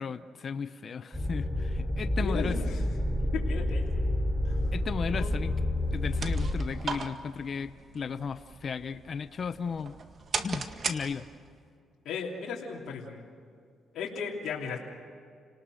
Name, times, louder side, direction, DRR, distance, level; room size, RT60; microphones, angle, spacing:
voice 1, 0.0-2.6 4.7-5.5 5.9-10.0 10.4-11.2, left 6 dB, 45° left, 11 dB, 0.8 m, -35 dB
sound 1, 1.1-6.5, left 1 dB, ahead, 4.6 m, -29 dB
voice 2, 2.2-2.9 3.3-4.2 4.4-4.7 5.1-5.4 12.0-13.2 13.9-14.8, left 6 dB, 70° left, -3 dB, 3.2 m, -36 dB
sound 2, 5.8-11.6, right 5 dB, 50° right, 1.8 m, -38 dB
30.0 x 19.0 x 6.4 m, 2.4 s
cardioid pair, 90°, 0 cm